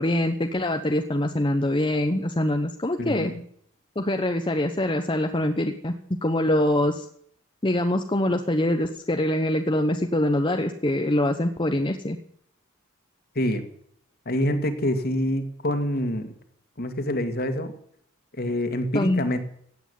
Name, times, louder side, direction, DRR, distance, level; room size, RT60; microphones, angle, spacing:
voice 1, 0.0-3.3 4.0-5.9 6.2-7.1 7.6-12.2 18.9-19.3, left 1 dB, 25° left, 5 dB, 1.0 m, -24 dB
voice 2, 3.0-3.4 13.4-13.6 14.3-16.3 16.8-17.7 18.4-19.4, left 1 dB, 50° left, 7 dB, 2.2 m, -26 dB
16.5 x 9.1 x 9.4 m, 0.66 s
head